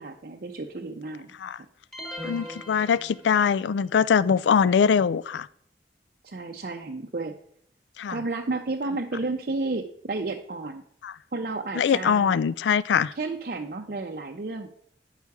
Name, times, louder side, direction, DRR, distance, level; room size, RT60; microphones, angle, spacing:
voice 1, 0.0-1.3 2.3-2.5 6.2-7.3 8.1-10.8 11.3-12.4 13.1-14.7, right 3 dB, 55° right, 2 dB, 0.6 m, -32 dB
sound 1, 1.9-3.7, left 1 dB, 5° left, 1.1 m, -39 dB
voice 2, 2.2-5.5 8.0-8.2 11.0-11.1 11.7-13.1, left 7 dB, 85° left, 19 dB, 0.3 m, -22 dB
9.6 x 5.6 x 4.7 m, 0.66 s
head